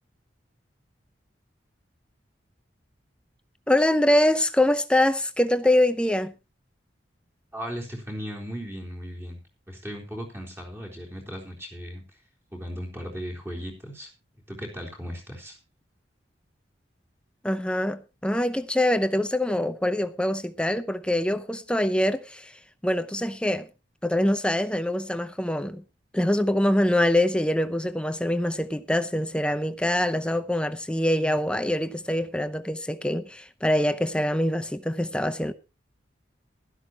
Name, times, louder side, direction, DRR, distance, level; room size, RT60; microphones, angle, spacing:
voice 1, 3.7-6.3 17.4-22.5 22.8-23.7 24.0-25.8 26.1-35.5, left 1 dB, 5° left, 0.7 m, -24 dB
voice 2, 7.5-9.4 9.7-12.0 12.5-14.1 14.5-15.6, equal, 15° right, 3.8 m, -36 dB
16.0 x 12.5 x 3.0 m
head